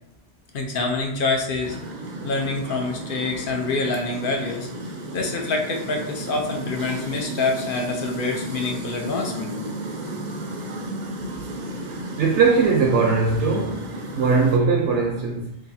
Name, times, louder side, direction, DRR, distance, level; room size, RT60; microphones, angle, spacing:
voice 1, 0.5-1.8 2.2-4.7 5.1-9.5, left 3 dB, 60° left, 0.6 m, -26 dB
sound 1, 1.6-14.6, right 1 dB, 60° right, 0.4 m, -33 dB
voice 2, 12.2-15.6, right 4 dB, 75° right, 0.9 m, -20 dB
2.7 x 2.5 x 4.0 m
omnidirectional pair, 1.2 m